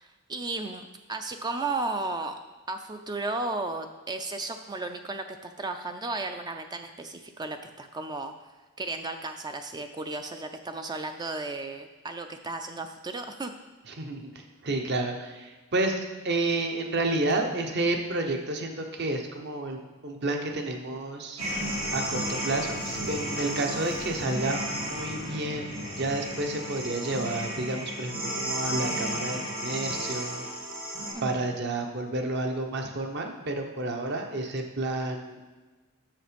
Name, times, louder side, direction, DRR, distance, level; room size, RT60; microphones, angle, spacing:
voice 1, 0.0-2.4 2.7-8.3 8.8-13.6 31.1-31.5, right 3 dB, 20° right, 6 dB, 0.4 m, -34 dB
voice 2, 13.9-21.4 21.9-30.4 31.2-35.4, right 2 dB, 50° right, 4 dB, 1.0 m, -30 dB
sound 1, 21.4-31.1, equal, 75° right, 3.1 m, -33 dB
7.6 x 6.7 x 5.2 m, 1.2 s
head